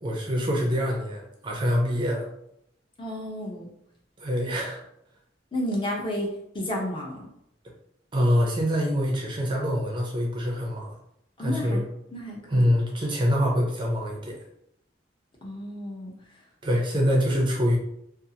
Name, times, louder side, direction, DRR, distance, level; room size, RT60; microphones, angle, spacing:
voice 1, 0.0-2.3 4.2-4.8 8.1-11.0 11.4-11.8 12.5-14.4 16.6-17.8, equal, 25° right, -1 dB, 0.4 m, -25 dB
voice 2, 3.0-3.7 5.5-7.3 11.4-11.8 12.1-12.7 15.4-16.1, equal, 25° left, -2 dB, 0.6 m, -32 dB
2.5 x 2.3 x 2.7 m, 0.77 s
head